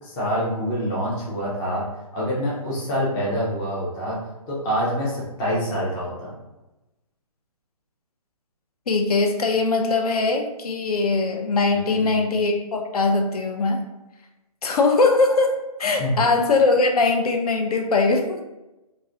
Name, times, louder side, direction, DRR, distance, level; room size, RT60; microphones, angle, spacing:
voice 1, 0.0-1.8 2.1-4.2 4.5-6.3 11.7-12.2 16.0-16.1, equal, 10° left, -6 dB, 0.3 m, -26 dB
voice 2, 8.9-13.8 14.6-18.4, left 3 dB, 75° left, 3 dB, 0.5 m, -21 dB
2.3 x 2.1 x 2.6 m, 0.99 s
figure-of-eight pair, 145°, 20 cm